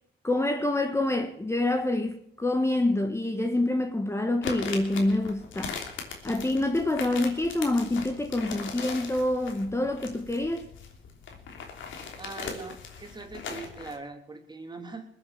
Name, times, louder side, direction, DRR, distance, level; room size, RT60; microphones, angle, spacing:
voice 1, 0.2-5.8 6.2-10.7, left 2 dB, 15° left, 1.4 m, -27 dB
sound 1, 4.4-14.0, left 5 dB, 75° left, 3.2 m, -39 dB
voice 2, 12.2-15.1, right 3 dB, 20° right, 3.0 m, -41 dB
21.0 x 8.1 x 7.9 m
cardioid pair, 90°, 20 cm